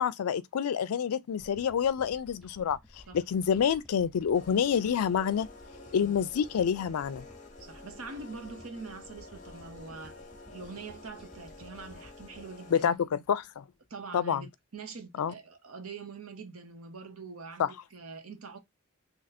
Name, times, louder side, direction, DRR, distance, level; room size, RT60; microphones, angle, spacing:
voice 1, 0.0-2.8 3.1-5.5 5.9-7.2 12.7-13.6 14.1-14.4 15.2-15.3 17.6-17.7, left 7 dB, 90° left, 0.4 m, -27 dB
sound 1, 1.4-13.9, equal, ahead, 0.6 m, -55 dB
sound 2, 4.3-13.1, left 3 dB, 35° left, 0.8 m, -50 dB
voice 2, 7.6-10.2 10.5-13.0 13.9-18.6, right 4 dB, 75° right, 0.9 m, -44 dB
2.9 x 2.5 x 4.1 m
head